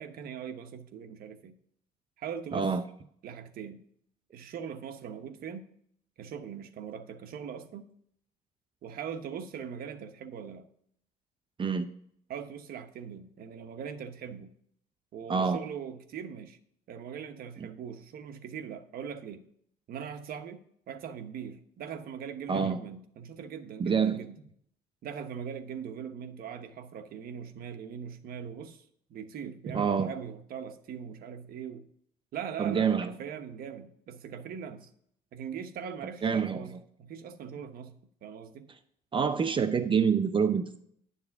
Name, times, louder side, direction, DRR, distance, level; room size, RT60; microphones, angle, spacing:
voice 1, 0.0-1.6 2.2-2.8 3.2-3.8 4.3-5.7 6.2-7.9 8.8-10.7 12.3-14.5 15.1-16.6 16.9-19.4 19.9-20.6 20.9-24.4 25.0-31.9 32.3-34.9 35.3-38.7, right 7 dB, 60° right, 1.1 m, -41 dB
voice 2, 2.5-2.8 11.6-11.9 15.3-15.6 22.5-22.8 23.8-24.2 29.7-30.1 32.6-33.1 36.2-36.6 39.1-40.8, right 6 dB, 30° right, 0.6 m, -26 dB
10.5 x 7.1 x 3.5 m
cardioid pair, 110°, 17 cm